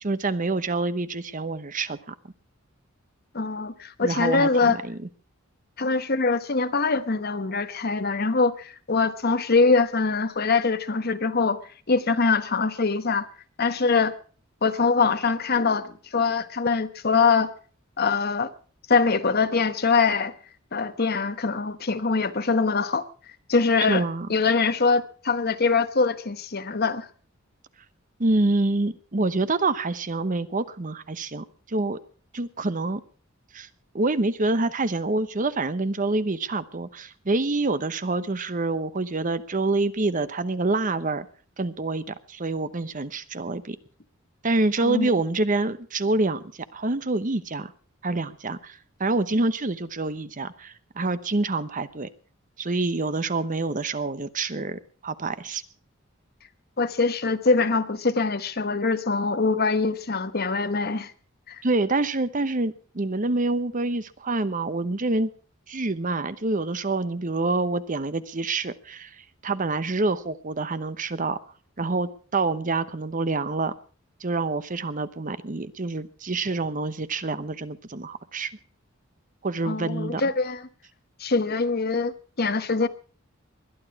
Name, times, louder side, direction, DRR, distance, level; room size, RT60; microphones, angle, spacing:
voice 1, 0.0-2.1 4.0-5.0 23.9-24.3 28.2-32.0 32.3-33.0 33.5-33.7 33.9-41.3 41.6-43.8 44.4-47.7 48.0-52.1 52.6-55.6 61.6-65.3 65.7-71.4 71.8-73.7 74.2-78.5 79.4-80.2, right 2 dB, 40° right, 0.9 m, -27 dB
voice 2, 3.3-4.8 5.8-11.6 11.9-13.3 13.6-14.1 14.6-17.5 18.0-18.5 18.9-20.3 20.7-23.0 23.5-24.0 24.3-27.1 44.8-45.1 56.8-61.1 61.5-61.6 79.7-80.7 81.2-82.9, left 4 dB, 50° left, 1.1 m, -23 dB
21.0 x 11.5 x 4.8 m
head